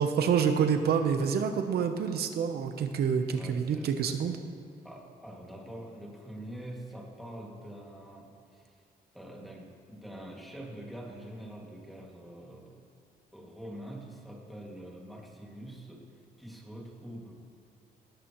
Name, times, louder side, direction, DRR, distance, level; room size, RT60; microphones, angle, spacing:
voice 1, 0.0-4.4, right 7 dB, 80° right, 6 dB, 0.9 m, -27 dB
voice 2, 3.3-3.9 4.8-8.8 9.1-12.8 13.3-16.1 16.4-17.3, right 1 dB, ahead, -3 dB, 2.2 m, -45 dB
18.5 x 15.5 x 3.1 m, 2.4 s
cardioid pair, 145°, 16 cm